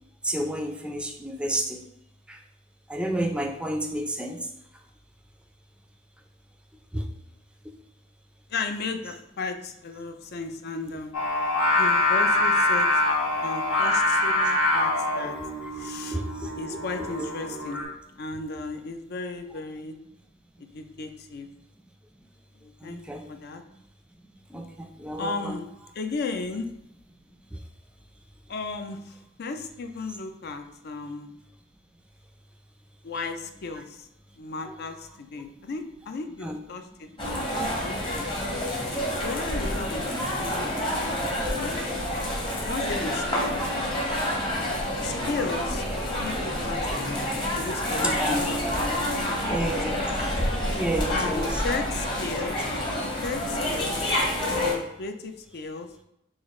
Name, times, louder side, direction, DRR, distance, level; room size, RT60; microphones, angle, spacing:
voice 1, 0.2-1.8 2.3-2.4 2.9-4.4 6.9-7.1 15.7-16.5 17.0-17.1 22.8-23.3 24.5-25.6 36.4-36.6 38.4-39.2 48.0-48.4 49.5-49.9 50.7-51.6, right 1 dB, 5° right, 4 dB, 0.4 m, -31 dB
voice 2, 8.5-11.1 11.8-13.0 13.4-15.4 15.8-16.2 16.6-17.8 18.1-20.0 20.6-21.5 22.6-23.0 23.3-23.6 25.2-25.7 25.9-26.7 28.5-31.3 33.0-34.1 34.4-38.3 39.2-41.8 42.6-43.6 45.0-45.8 46.2-47.2 47.5-49.8 51.1-54.2 54.5-55.9, left 4 dB, 55° left, 7 dB, 0.4 m, -35 dB
Singing, 11.1-17.8, left 2 dB, 90° left, 1.4 m, -24 dB
sound 1, 37.2-54.7, left 1 dB, 25° left, 1.0 m, -28 dB
6.4 x 2.4 x 3.1 m, 0.81 s
head